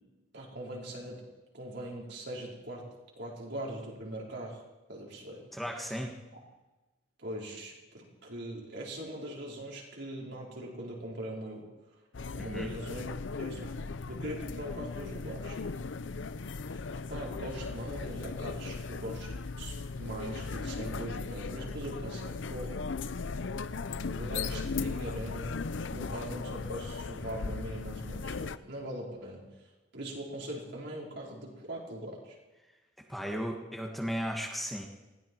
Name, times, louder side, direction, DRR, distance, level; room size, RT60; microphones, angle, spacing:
voice 1, 0.3-1.2 1.5-2.8 3.2-4.6 4.9-5.4 5.8-6.0 6.3-6.4 7.2-11.7 12.3-13.1 13.4-15.6 17.1-22.8 24.1-25.6 25.9-32.4, right 1 dB, 60° right, -2 dB, 4.6 m, -41 dB
voice 2, 5.5-6.2 12.4-12.7 33.1-34.9, equal, ahead, 1 dB, 1.5 m, -35 dB
sound 1, 12.1-28.6, left 4 dB, 70° left, 0.6 m, -37 dB
19.5 x 15.5 x 4.7 m, 1.1 s
head